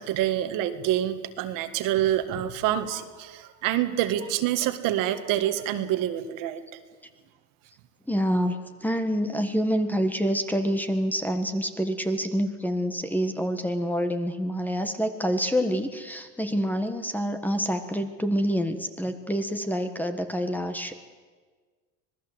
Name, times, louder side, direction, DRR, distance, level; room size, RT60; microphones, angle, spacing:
voice 1, 0.0-6.6, right 12 dB, 60° right, 9 dB, 1.8 m, -27 dB
voice 2, 8.1-21.0, equal, 5° left, 8 dB, 1.5 m, -27 dB
26.0 x 19.0 x 8.1 m, 1.5 s
supercardioid pair, 130°, 36 cm